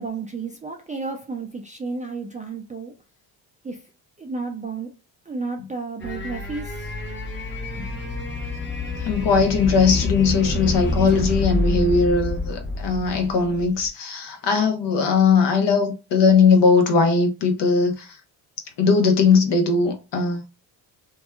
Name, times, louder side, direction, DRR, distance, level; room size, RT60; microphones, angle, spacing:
voice 1, 0.0-2.9 3.6-3.8 4.2-4.9 5.3-7.0, right 4 dB, 15° right, 0.3 m, -32 dB
sound 1, 6.0-13.9, left 2 dB, 25° left, 1.1 m, -28 dB
voice 2, 9.0-18.2 18.8-20.4, left 4 dB, 55° left, 0.9 m, -19 dB
2.7 x 2.3 x 2.2 m
supercardioid pair, 60°, 50 cm